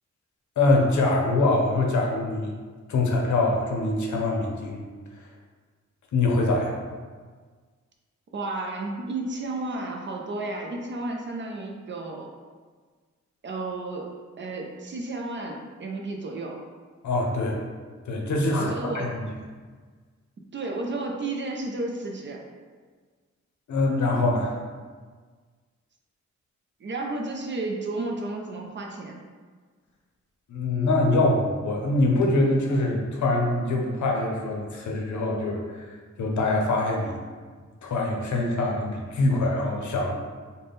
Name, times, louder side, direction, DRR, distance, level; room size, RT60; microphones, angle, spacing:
voice 1, 0.6-2.5 2.9-4.8 6.1-6.8 17.0-17.6 18.1-19.3 23.7-24.6 30.5-35.9 36.2-37.2 37.8-40.2, left 2 dB, 75° left, 0 dB, 0.6 m, -24 dB
voice 2, 8.3-12.3 13.4-14.1 14.4-16.6 18.6-19.1 20.5-22.4 26.8-29.2, right 2 dB, 40° right, 1 dB, 0.4 m, -32 dB
3.9 x 2.1 x 3.5 m, 1.5 s
wide cardioid pair, 155°, 30 cm